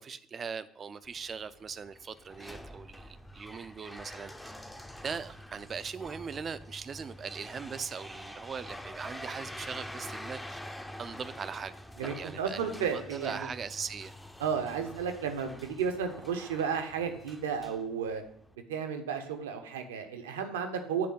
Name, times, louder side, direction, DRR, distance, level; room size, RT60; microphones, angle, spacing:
voice 1, 0.0-4.5 5.0-10.6 11.0-11.7 12.0-14.1, right 6 dB, 35° right, 14 dB, 0.5 m, -40 dB
sound 1, 1.0-18.5, left 1 dB, 5° left, 0.6 m, -46 dB
voice 2, 12.0-13.5 14.4-18.2 18.7-21.1, right 7 dB, 80° right, 6 dB, 0.8 m, -33 dB
7.7 x 3.4 x 5.5 m, 0.65 s
hypercardioid pair, 60°, 0 cm